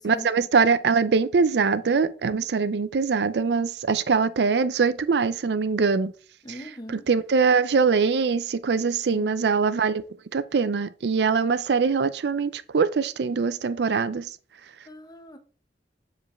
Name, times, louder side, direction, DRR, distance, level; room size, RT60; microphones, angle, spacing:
voice 1, 0.0-6.1 6.9-10.0 10.3-14.3, right 5 dB, 70° right, 0.4 m, -23 dB
voice 2, 6.4-7.0 9.1-9.4 14.9-15.4, equal, 25° left, 0.9 m, -40 dB
7.4 x 4.9 x 3.1 m
head